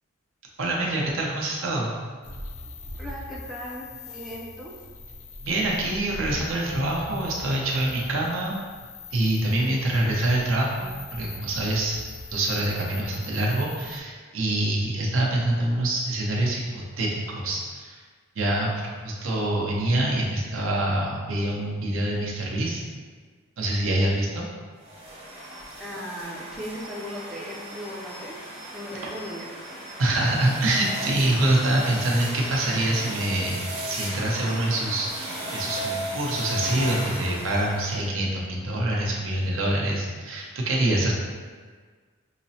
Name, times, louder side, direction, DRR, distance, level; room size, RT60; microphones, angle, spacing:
voice 1, 0.6-1.9 5.4-8.6 9.1-12.0 12.3-18.0 18.4-22.8 23.6-24.4 30.0-41.1, right 1 dB, 70° right, -2 dB, 0.7 m, -25 dB
sound 1, 2.2-14.0, left 2 dB, 75° left, 0.5 m, -41 dB
voice 2, 3.0-4.7 25.8-28.4 28.7-29.8, equal, ahead, -5 dB, 0.3 m, -37 dB
sound 2, 24.8-38.0, right 1 dB, 30° right, 0.8 m, -36 dB
5.7 x 2.0 x 2.7 m, 1.5 s
head